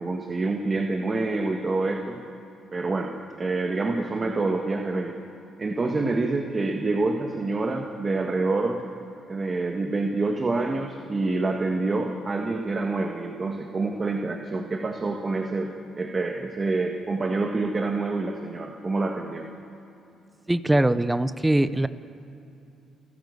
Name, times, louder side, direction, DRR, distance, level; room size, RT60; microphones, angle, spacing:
voice 1, 0.0-2.2 2.7-5.2 5.6-8.8 9.3-19.5, right 3 dB, 30° right, 3 dB, 1.8 m, -27 dB
voice 2, 20.5-21.9, right 1 dB, 10° right, 13 dB, 0.8 m, -22 dB
28.5 x 12.0 x 8.1 m, 2.8 s
cardioid pair, 90°, 0 cm